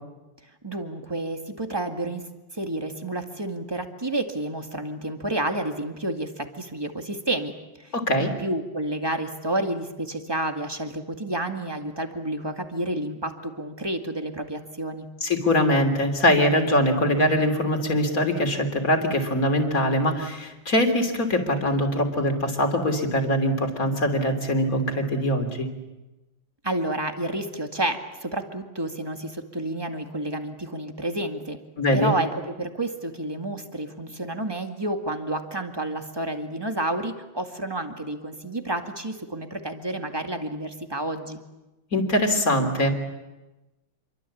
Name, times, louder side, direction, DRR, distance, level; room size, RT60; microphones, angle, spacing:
voice 1, 0.6-2.2 2.5-7.5 7.8-7.9 8.2-15.1 26.6-31.6 31.9-41.4, right 1 dB, 10° right, 5 dB, 1.9 m, -30 dB
voice 2, 7.9-8.3 15.2-25.7 31.8-32.1 41.9-42.9, left 1 dB, 40° left, 5 dB, 3.6 m, -22 dB
27.5 x 23.5 x 8.6 m, 1.1 s
omnidirectional pair, 2.3 m